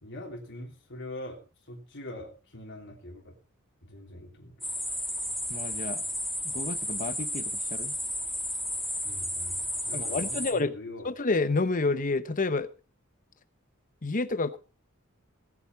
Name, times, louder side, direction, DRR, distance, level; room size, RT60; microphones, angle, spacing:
voice 1, 0.0-3.4 3.8-4.6 9.0-11.1, left 1 dB, 60° left, 3.2 m, -43 dB
sound 1, 4.6-10.5, equal, ahead, 2.8 m, -33 dB
voice 2, 5.5-6.0 6.4-7.9 9.9-10.7 11.0-12.7 14.0-14.6, left 3 dB, 40° left, 0.9 m, -29 dB
18.0 x 8.7 x 4.5 m
head